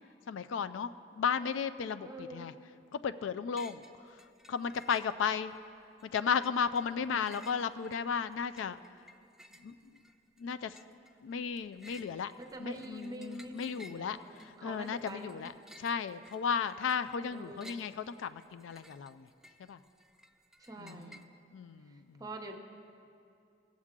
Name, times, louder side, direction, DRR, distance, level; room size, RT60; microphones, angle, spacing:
voice 1, 0.3-2.5 2.9-3.8 4.5-5.5 6.0-8.8 9.6-9.7 10.4-10.8 11.2-12.3 12.6-15.5 15.8-19.3 19.7-19.8 20.8-21.1 21.5-22.2, left 6 dB, 85° left, 12 dB, 0.3 m, -34 dB
voice 2, 2.0-2.6 7.0-7.5 12.4-15.5 17.3-17.8 20.6-21.3 21.8-22.6, right 1 dB, 20° right, 5 dB, 0.7 m, -46 dB
sound 1, 3.6-3.9 4.2-5.6 6.0-21.2, equal, 5° right, 0.3 m, -57 dB
17.0 x 7.4 x 3.7 m, 2.6 s
head